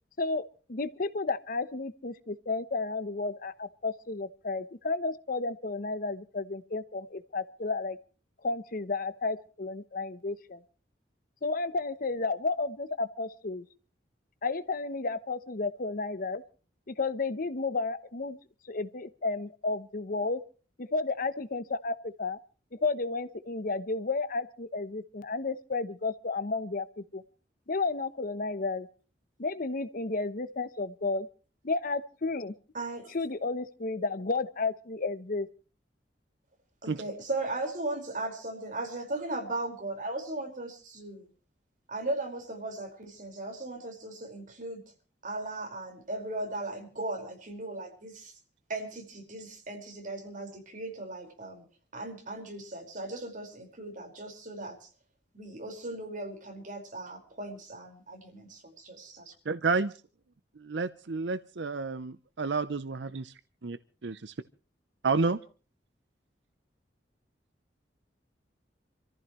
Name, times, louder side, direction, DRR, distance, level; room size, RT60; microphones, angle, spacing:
voice 1, 0.7-8.0 8.4-10.6 11.4-13.6 14.4-16.4 16.9-18.4 18.7-20.4 20.8-22.4 22.7-27.2 27.7-28.9 29.4-31.3 31.6-32.5 33.1-35.5, left 3 dB, 55° left, 14 dB, 0.9 m, -32 dB
voice 2, 32.7-33.2 36.8-41.3 41.9-44.8 45.2-48.3 48.7-51.6 51.9-54.9 55.3-59.1, right 2 dB, 50° right, 2 dB, 4.9 m, -37 dB
voice 3, 59.5-59.9 60.6-63.3 63.6-63.8 64.0-64.3 65.0-65.4, right 4 dB, 85° right, 13 dB, 0.7 m, -30 dB
27.0 x 14.5 x 3.1 m, 0.37 s
head